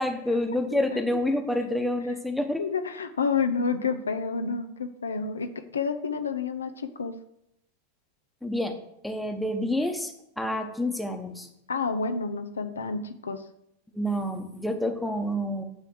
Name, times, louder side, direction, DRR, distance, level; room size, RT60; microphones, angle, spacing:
voice 1, 0.0-2.6 8.4-8.8 9.0-11.5 13.9-15.6, left 1 dB, ahead, 4 dB, 1.1 m, -28 dB
voice 2, 2.6-7.2 11.7-13.4, left 5 dB, 85° left, 8 dB, 0.6 m, -29 dB
9.1 x 3.4 x 6.2 m, 0.79 s
hypercardioid pair, 95°, 0 cm